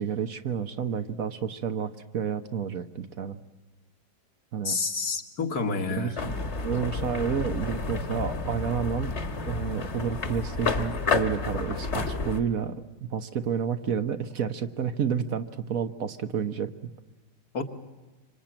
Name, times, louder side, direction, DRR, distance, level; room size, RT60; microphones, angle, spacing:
voice 1, 0.0-3.4 4.5-4.8 6.0-9.2 9.5-16.9, right 7 dB, 60° right, 9 dB, 1.5 m, -30 dB
voice 2, 4.6-6.2 17.5-17.6, left 4 dB, 65° left, 5 dB, 2.4 m, -29 dB
sound 1, 6.2-12.4, left 4 dB, 45° left, 1.8 m, -30 dB
26.0 x 25.5 x 8.9 m, 1.2 s
omnidirectional pair, 1.7 m